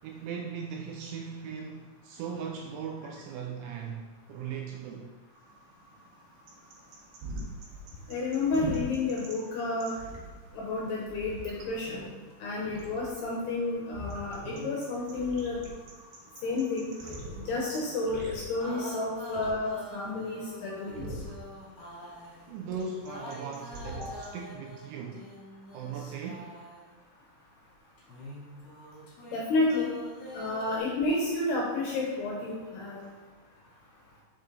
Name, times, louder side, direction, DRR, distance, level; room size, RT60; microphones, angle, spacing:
voice 1, 0.0-5.1 22.5-25.3 25.7-26.6 33.0-33.2, right 6 dB, 80° right, 1 dB, 2.8 m, -39 dB
sound 1, 5.4-24.4, right 1 dB, 60° right, 3.5 m, -44 dB
voice 2, 8.1-9.9 10.5-12.1 12.4-15.6 16.4-16.9 17.5-21.0 24.0-24.1 29.3-29.9 30.3-33.0, left 2 dB, 70° left, -3 dB, 2.6 m, -31 dB
sound 2, 17.2-18.1 18.6-22.5 23.0-26.9 28.0-30.8, equal, 40° left, 3.0 m, -46 dB
7.5 x 5.8 x 4.1 m, 1.3 s
omnidirectional pair, 5.9 m